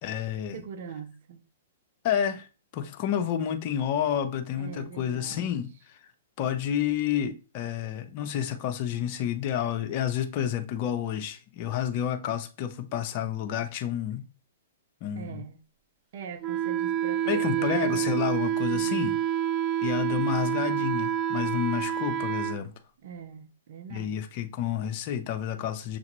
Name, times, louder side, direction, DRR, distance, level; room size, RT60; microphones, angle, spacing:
voice 1, 0.0-0.6 2.0-2.5 2.7-6.0 6.4-14.3 15.0-15.4 17.3-19.1 19.8-22.7 23.9-26.0, left 9 dB, 45° left, 0.6 m, -30 dB
voice 2, 0.5-1.4 4.5-5.6 15.1-15.6 16.1-18.1 18.7-19.2 23.0-24.2, right 7 dB, 60° right, 0.7 m, -42 dB
Wind instrument woodwind instrument, 16.4-22.6, right 10 dB, 30° right, 0.3 m, -28 dB
6.6 x 2.4 x 3.0 m
hypercardioid pair, 120°, 0 cm